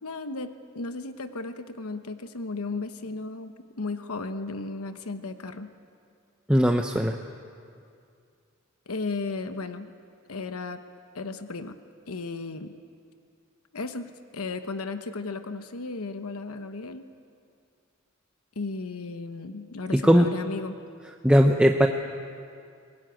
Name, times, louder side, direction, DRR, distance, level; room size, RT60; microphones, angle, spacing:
voice 1, 0.0-5.7 8.9-9.9 10.3-10.8 11.1-11.8 12.1-12.8 13.7-17.1 18.6-20.8, left 3 dB, 85° left, 9 dB, 1.0 m, -35 dB
voice 2, 6.5-7.2 19.9-20.3 21.2-21.9, equal, 5° right, 3 dB, 0.8 m, -19 dB
23.5 x 20.0 x 9.2 m, 2.3 s
head